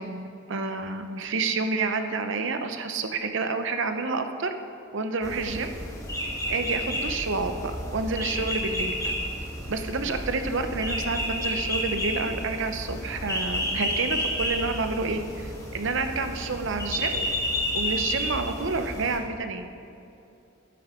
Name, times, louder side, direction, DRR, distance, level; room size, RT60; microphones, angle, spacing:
voice 1, 0.0-4.5 4.9-5.7 6.5-9.1 9.7-17.3 17.7-19.7, right 3 dB, 60° right, 7 dB, 0.7 m, -29 dB
sound 1, 5.2-19.2, equal, 15° left, 1.5 m, -31 dB
12.0 x 9.5 x 3.7 m, 2.7 s
head